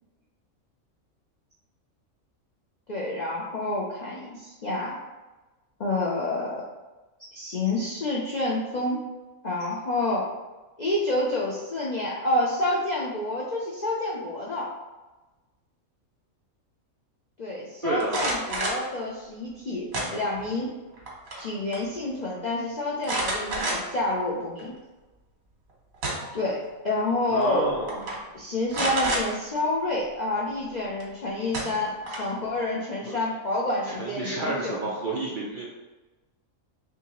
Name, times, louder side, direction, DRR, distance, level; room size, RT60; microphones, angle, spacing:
voice 1, 2.9-5.0 5.8-6.8 7.3-9.0 9.4-10.3 10.8-14.7 17.4-20.7 21.4-24.7 26.3-27.9 28.3-34.8, left 2 dB, 60° left, -4 dB, 0.4 m, -28 dB
voice 2, 17.8-18.1 27.3-28.1 33.1-33.2 33.9-35.7, right 2 dB, 55° right, -4 dB, 0.5 m, -30 dB
sound 1, 18.0-18.9 19.9-20.5 20.9-21.5 21.7-21.8 23.0-24.0 24.6-24.7 25.7-26.4 27.4-27.6 27.9-28.2 28.7-29.2 31.0-31.1 31.5-32.4, right 1 dB, 85° right, 1.5 m, -29 dB
4.6 x 2.9 x 3.0 m, 1.2 s
omnidirectional pair, 1.4 m